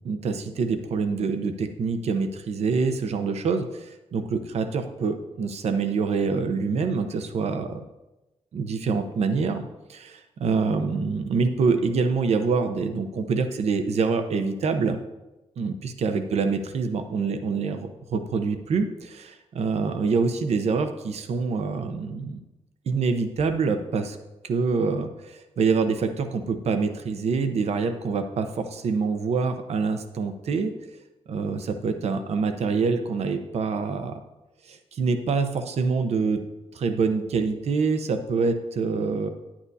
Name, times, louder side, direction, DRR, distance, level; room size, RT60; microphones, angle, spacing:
voice 1, 0.0-7.7 8.5-15.0 15.6-22.4 22.9-24.2 24.4-30.7 31.3-34.2 34.6-36.4 36.7-39.3, right 4 dB, 65° right, 8 dB, 0.7 m, -26 dB
9.8 x 8.7 x 2.7 m, 1.0 s
cardioid pair, 120°, 12 cm